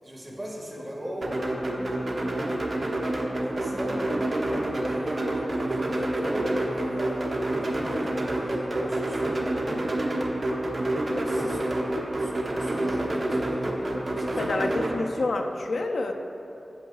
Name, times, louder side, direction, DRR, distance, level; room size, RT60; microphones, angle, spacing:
voice 1, 0.0-1.4 1.6-2.2 3.4-4.0 4.9-10.0 11.2-14.8, equal, 20° right, -3 dB, 1.8 m, -38 dB
sound 1, 1.2-14.9, right 1 dB, 45° right, 1.1 m, -28 dB
voice 2, 14.4-16.1, left 2 dB, 85° left, 4 dB, 0.5 m, -28 dB
17.0 x 6.3 x 2.4 m, 2.9 s
wide cardioid pair, 95°, 0 cm